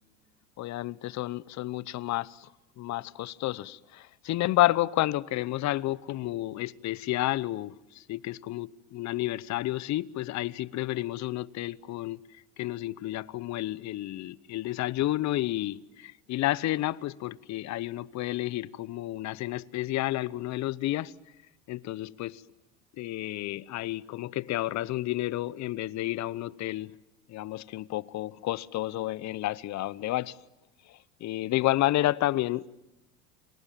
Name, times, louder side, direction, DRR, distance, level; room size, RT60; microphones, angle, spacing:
voice 1, 0.6-2.5 2.8-12.2 12.6-21.1 21.7-22.4 23.0-26.9 27.3-30.4 30.9-32.7, left 16 dB, 40° left, 0.9 m, -30 dB
29.0 x 27.5 x 7.5 m
hypercardioid pair, 95°, 41 cm